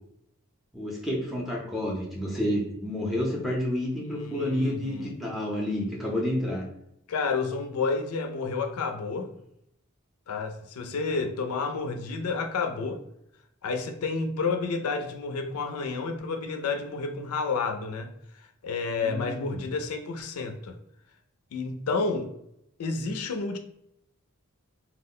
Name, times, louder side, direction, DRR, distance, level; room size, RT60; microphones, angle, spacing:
voice 1, 0.7-6.6 18.9-19.7, left 1 dB, ahead, -3 dB, 0.5 m, -30 dB
voice 2, 4.1-5.1 7.1-9.3 10.3-13.0 13.6-18.1 18.6-20.7 21.5-22.3 22.8-23.6, left 4 dB, 85° left, 6 dB, 0.4 m, -30 dB
2.2 x 2.0 x 3.6 m, 0.76 s
head